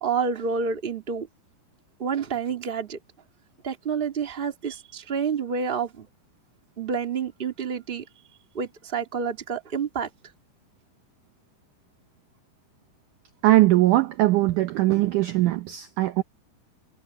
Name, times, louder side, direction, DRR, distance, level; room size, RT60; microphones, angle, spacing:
voice 1, 0.0-1.3 2.0-3.0 3.6-6.1 6.8-8.0 8.5-10.1, right 6 dB, 20° right, 1.5 m, -28 dB
voice 2, 13.4-16.2, right 17 dB, 80° right, 1.8 m, -20 dB
omnidirectional pair, 4.8 m